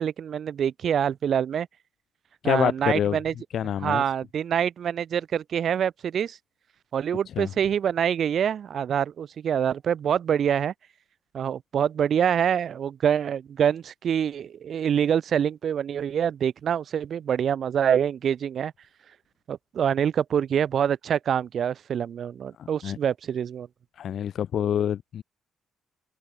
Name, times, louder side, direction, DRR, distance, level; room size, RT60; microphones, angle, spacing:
voice 1, 0.0-1.7 2.4-3.3 3.6-6.4 6.9-10.7 11.3-18.7 19.5-23.7, right 8 dB, 60° right, 0.5 m, -25 dB
voice 2, 2.4-3.2 3.5-4.0 7.4-7.5 22.6-23.0 24.0-25.2, left 9 dB, 65° left, 0.3 m, -26 dB
open air
cardioid pair, 90°, 0 cm